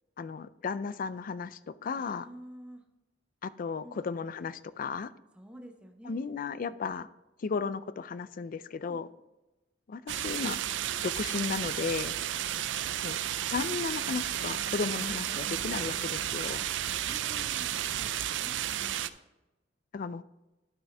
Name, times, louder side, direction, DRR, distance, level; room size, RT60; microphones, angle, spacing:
voice 1, 0.2-2.3 3.4-5.1 6.0-7.1 7.4-9.1 9.9-10.6 11.0-12.2 13.0-13.2 13.5-16.7 19.9-20.2, left 5 dB, 50° left, 16 dB, 0.4 m, -34 dB
voice 2, 1.9-2.8 3.8-4.0 5.3-6.8 8.7-9.0 17.0-19.2, equal, 5° right, 3 dB, 0.9 m, -50 dB
sound 1, 10.1-19.1, right 11 dB, 80° right, 0.4 m, -33 dB
11.5 x 6.2 x 3.3 m, 1.0 s
head